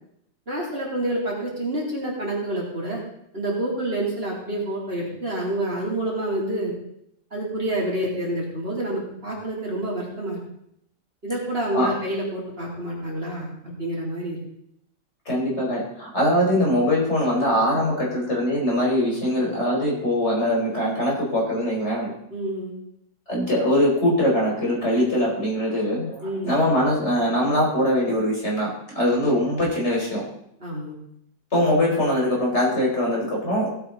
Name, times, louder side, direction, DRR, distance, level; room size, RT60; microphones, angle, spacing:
voice 1, 0.5-3.0 3.3-6.7 7.3-10.4 11.2-14.4 22.3-22.8 26.2-26.5 30.6-31.0, right 1 dB, 45° right, -4 dB, 3.9 m, -28 dB
voice 2, 15.2-22.1 23.3-30.2 31.5-33.7, left 1 dB, 50° left, -3 dB, 5.0 m, -22 dB
18.0 x 8.7 x 4.1 m, 0.73 s
omnidirectional pair, 1.4 m